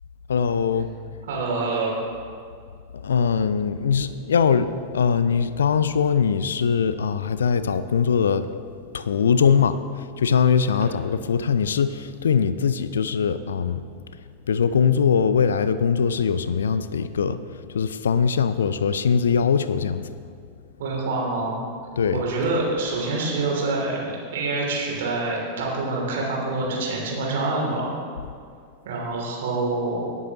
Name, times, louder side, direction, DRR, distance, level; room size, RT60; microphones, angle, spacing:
voice 1, 0.3-0.9 3.0-4.7 4.9-8.5 8.9-9.8 10.2-13.8 14.5-17.4 17.7-20.0 22.0-22.2, left 6 dB, 65° left, 13 dB, 0.4 m, -21 dB
voice 2, 1.2-1.9 10.7-10.9 20.8-21.6 22.1-28.0 28.8-30.1, right 3 dB, 55° right, -2 dB, 2.8 m, -26 dB
18.0 x 8.2 x 2.9 m, 2.3 s
figure-of-eight pair, 90°, 0 cm